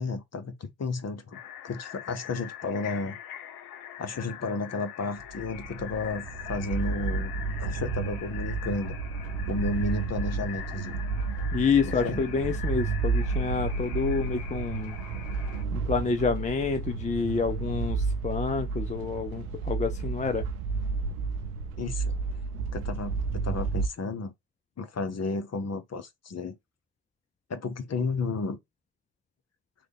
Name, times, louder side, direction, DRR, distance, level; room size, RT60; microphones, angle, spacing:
voice 1, 0.0-3.2 4.0-7.3 7.6-9.0 9.5-11.0 11.8-12.2 21.8-22.1 22.7-23.1 23.4-24.3 24.8-26.5 27.5-28.6, left 3 dB, 40° left, 1.0 m, -32 dB
sound 1, 1.3-15.6, left 10 dB, 75° left, 0.7 m, -43 dB
sound 2, 5.2-23.9, right 4 dB, 85° right, 0.5 m, -31 dB
voice 2, 11.5-15.0 15.7-20.4, left 5 dB, 20° left, 0.5 m, -28 dB
3.2 x 2.3 x 3.9 m
hypercardioid pair, 45°, 42 cm